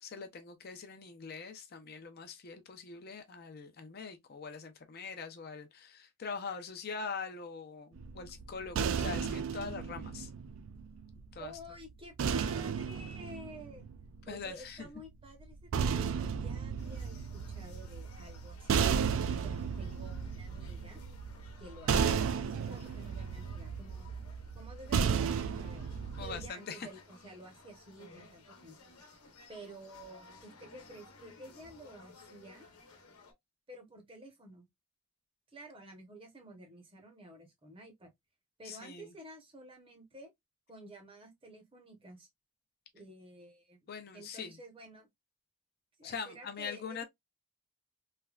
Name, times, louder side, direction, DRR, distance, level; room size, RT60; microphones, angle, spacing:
voice 1, 0.0-10.3 11.3-11.5 14.3-14.9 26.2-26.9 38.6-39.1 43.9-44.5 46.0-47.0, left 5 dB, 45° left, 0.5 m, -43 dB
sound 1, 8.0-11.3 12.2-14.5 15.4-26.5, right 6 dB, 60° right, 0.3 m, -34 dB
voice 2, 11.4-13.9 14.3-18.8 19.4-21.0 21.6-28.8 29.5-32.7 33.7-34.7 35.5-38.1 38.6-40.3 40.7-42.3 42.9-43.8 44.1-45.1 46.0-47.0, right 1 dB, 25° right, 0.7 m, -51 dB
sound 2, 16.8-33.3, left 3 dB, 85° left, 0.9 m, -57 dB
3.2 x 2.2 x 2.3 m
head